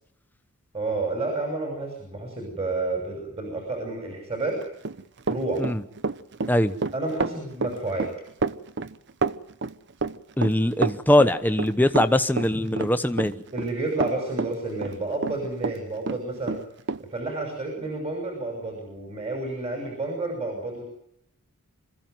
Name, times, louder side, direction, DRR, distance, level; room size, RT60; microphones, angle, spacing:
voice 1, 0.7-4.6 5.3-5.6 6.9-8.1 13.5-16.6 17.1-20.8, right 2 dB, 30° right, 1 dB, 6.1 m, -30 dB
Run, 4.6-15.8 16.1-17.0, right 4 dB, 50° right, 0.8 m, -29 dB
voice 2, 10.4-13.4, left 1 dB, 10° left, 9 dB, 1.1 m, -21 dB
26.0 x 15.0 x 9.4 m, 0.79 s
head